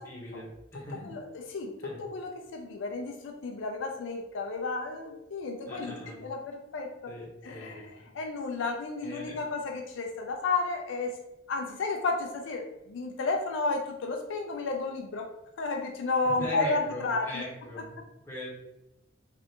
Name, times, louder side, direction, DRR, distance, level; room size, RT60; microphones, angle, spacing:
voice 1, 0.0-1.1 1.8-2.0 5.6-6.2 7.1-8.1 9.0-9.4 16.4-18.5, equal, 15° left, -6 dB, 1.0 m, -39 dB
voice 2, 0.7-7.1 7.4-11.1 11.5-15.3 15.6-17.5, left 3 dB, 75° left, 2 dB, 0.4 m, -32 dB
3.3 x 2.5 x 2.8 m, 0.92 s
head